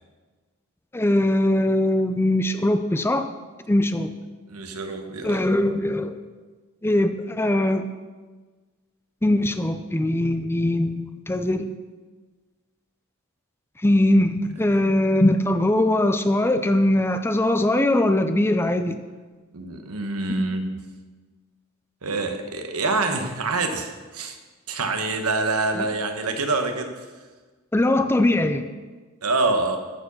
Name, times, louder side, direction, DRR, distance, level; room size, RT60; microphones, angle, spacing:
voice 1, 0.9-3.3 3.7-4.1 5.2-6.2 6.8-7.8 9.2-11.7 13.8-19.0 25.8-25.9 27.7-28.7, left 1 dB, 10° left, 9 dB, 0.4 m, -21 dB
voice 2, 4.5-5.4 19.5-20.9 22.0-24.4 24.7-26.9 29.2-29.8, right 3 dB, 90° right, 6 dB, 1.2 m, -26 dB
14.0 x 4.8 x 6.2 m, 1.3 s
head